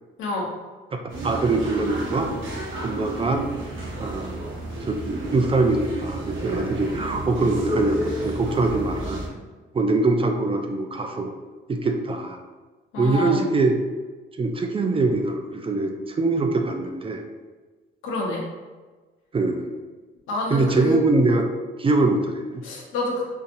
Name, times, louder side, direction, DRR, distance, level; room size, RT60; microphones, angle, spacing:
sound 1, 1.1-9.3, right 1 dB, 80° right, 1.0 m, -31 dB
voice 1, 1.2-2.3 2.8-3.5 4.0-4.4 4.8-9.2 9.7-11.3 11.7-12.4 13.0-13.8 14.4-17.2 19.3-19.7 20.5-21.5 21.8-22.6, right 3 dB, 30° right, 4 dB, 0.4 m, -23 dB
voice 2, 12.9-13.4 18.0-18.4 20.3-21.0 22.6-23.2, left 2 dB, 85° left, -3 dB, 1.0 m, -27 dB
4.0 x 2.8 x 2.6 m, 1.3 s
cardioid pair, 90°, 20 cm